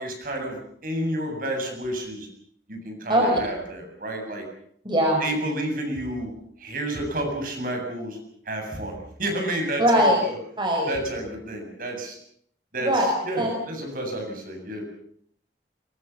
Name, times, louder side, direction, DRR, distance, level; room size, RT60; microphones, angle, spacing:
voice 1, 0.0-2.3 2.7-4.4 5.2-6.3 6.6-8.2 8.5-10.4 10.9-12.2 12.7-14.8, right 1 dB, 50° right, 3 dB, 7.9 m, -30 dB
voice 2, 3.1-3.4 4.8-5.2 9.8-10.2 10.6-10.9 12.8-13.1 13.4-13.5, equal, 25° right, 1 dB, 5.4 m, -20 dB
23.0 x 22.5 x 7.2 m, 0.66 s
head